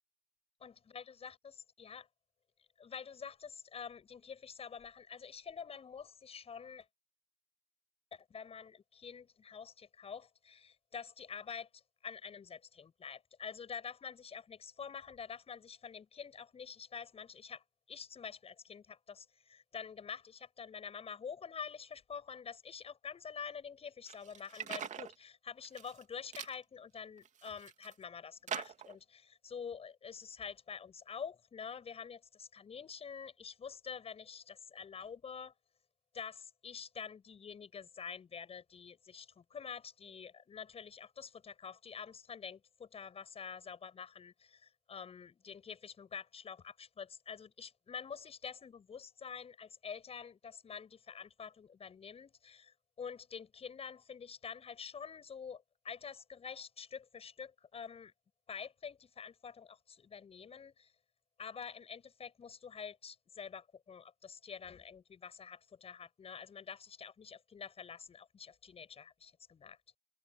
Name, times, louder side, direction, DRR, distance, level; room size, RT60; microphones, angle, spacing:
voice 1, 0.6-2.1 2.8-6.9 8.1-35.5 36.1-58.1 58.5-60.9 61.4-69.8, left 6 dB, 15° left, 7.3 m, -47 dB
sound 1, 24.1-25.1 25.6-26.0 26.3-26.6 27.2-27.9 28.5-29.0, right 8 dB, 20° right, 2.8 m, -43 dB
hypercardioid pair, 110°, 36 cm